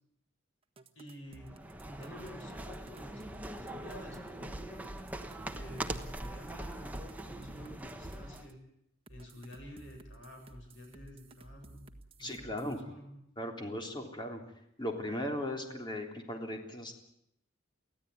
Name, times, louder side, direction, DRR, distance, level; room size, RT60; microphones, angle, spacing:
sound 1, 0.8-4.3 4.8-8.5 9.1-12.8, right 2 dB, 30° right, 1.6 m, -54 dB
voice 1, 0.9-4.8 5.5-8.6 9.1-11.8 12.2-13.2, equal, 65° left, 3 dB, 7.6 m, -50 dB
sound 2, 1.3-8.5, right 1 dB, 10° right, 1.2 m, -42 dB
voice 2, 12.2-12.8 13.4-14.4 14.8-16.9, left 1 dB, 25° left, 2 dB, 3.5 m, -37 dB
24.0 x 16.0 x 9.5 m, 0.77 s
head